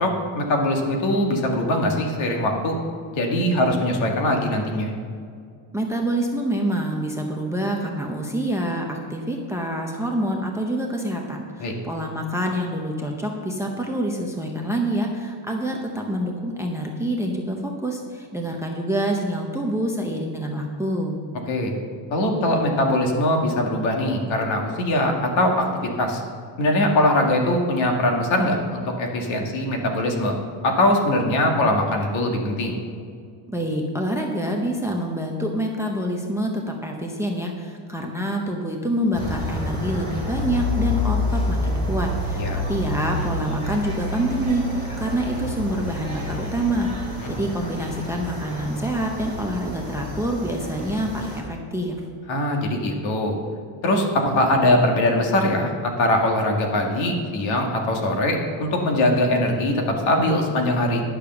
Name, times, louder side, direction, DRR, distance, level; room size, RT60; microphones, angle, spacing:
voice 1, 0.0-2.8 3.1-4.9 11.6-11.7 21.5-21.7 22.1-26.2 26.6-30.3 30.6-32.7 42.4-42.6 47.2-47.3 52.3-53.3 53.8-61.0, left 1 dB, 65° left, 2 dB, 2.0 m, -22 dB
voice 2, 5.7-21.2 33.5-52.0, right 1 dB, 5° right, 1 dB, 0.6 m, -26 dB
sound 1, 39.1-51.4, left 2 dB, 10° left, 2.3 m, -28 dB
10.5 x 6.7 x 6.9 m, 2.2 s
cardioid pair, 165°, 50 cm